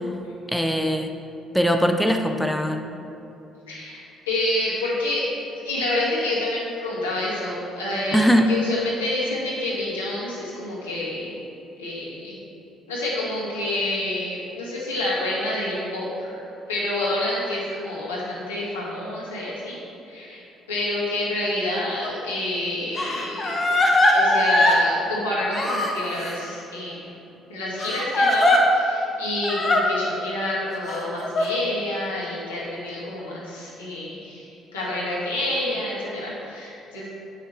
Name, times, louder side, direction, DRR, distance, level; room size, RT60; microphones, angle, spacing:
voice 1, 0.5-1.1 1.5-2.9 8.1-8.6, equal, 5° left, 5 dB, 0.6 m, -20 dB
voice 2, 3.7-5.3 5.6-8.2 8.5-11.4 11.8-12.4 12.9-16.4 16.7-19.8 20.1-23.6 24.1-27.2 27.5-34.5 34.7-37.1, left 1 dB, 90° left, -6 dB, 1.8 m, -28 dB
Crying sobbing, 22.0-22.1 23.0-24.8 25.5-26.4 27.8-28.6 29.4-29.8 30.9-31.5, left 1 dB, 35° left, 1.3 m, -20 dB
8.3 x 5.7 x 4.5 m, 3.0 s
hypercardioid pair, 50°, 0 cm